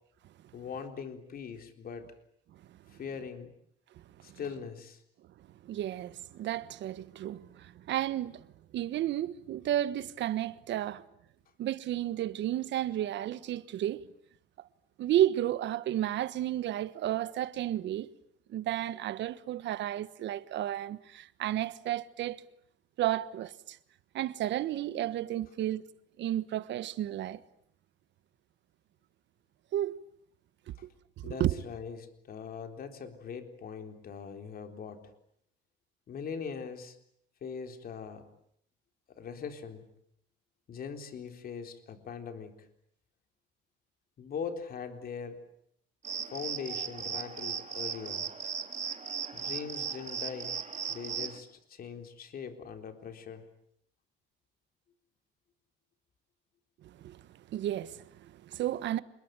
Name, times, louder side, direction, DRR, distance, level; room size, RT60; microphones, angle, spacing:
voice 1, 0.5-2.1 2.9-3.5 4.2-5.0 30.8-30.9 31.2-35.1 36.1-37.0 37.4-38.2 39.1-39.9 40.7-42.6 44.2-45.4 46.3-48.3 49.3-50.5 50.9-53.4, left 6 dB, 45° left, 3.9 m, -41 dB
voice 2, 5.6-8.5 8.7-11.0 11.6-14.0 15.0-18.1 18.5-22.4 23.0-23.8 24.1-25.8 26.2-27.4 29.7-30.0 31.3-31.6 56.8-57.2 57.5-59.0, right 12 dB, 60° right, 1.4 m, -32 dB
sound 1, 46.0-51.4, right 7 dB, 35° right, 2.5 m, -37 dB
28.0 x 21.5 x 9.1 m
cardioid pair, 125°, 21 cm